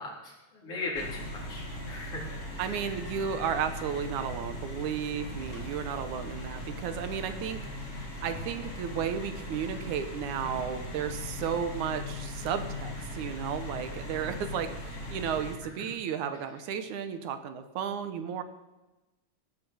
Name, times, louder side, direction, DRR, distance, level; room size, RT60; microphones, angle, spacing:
voice 1, 0.0-2.2 2.5-2.8 7.5-7.6 13.9-14.3, left 3 dB, 50° left, -3 dB, 4.8 m, -39 dB
sound 1, 0.9-15.5, left 1 dB, 25° left, 2.5 m, -39 dB
voice 2, 2.6-7.6 8.2-18.4, right 8 dB, 85° right, 9 dB, 2.5 m, -33 dB
17.0 x 9.6 x 6.4 m, 1.1 s
omnidirectional pair, 3.4 m